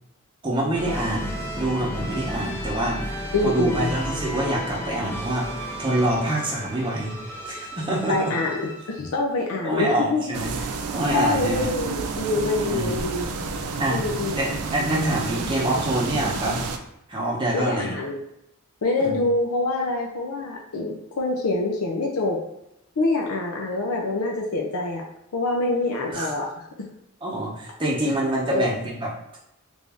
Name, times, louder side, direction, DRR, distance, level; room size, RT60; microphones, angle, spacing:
voice 1, 0.4-7.2 7.5-8.3 9.6-10.5 10.9-11.7 12.7-13.0 13.8-14.0 14.3-16.6 17.1-18.0 19.0-19.2 26.1-26.3 27.2-29.1, right 1 dB, 20° right, -4 dB, 0.8 m, -26 dB
Orchestral Hero Theme, 0.7-9.1, equal, 10° left, 0.4 m, -33 dB
voice 2, 3.3-3.9 8.1-10.2 11.1-13.3 13.9-14.4 17.5-18.2 18.8-22.4 23.0-25.0 25.3-26.5 28.5-28.7, left 2 dB, 80° left, 0 dB, 0.5 m, -25 dB
sound 1, 10.3-16.8, right 4 dB, 90° right, 0.5 m, -30 dB
3.4 x 2.6 x 3.4 m, 0.82 s
head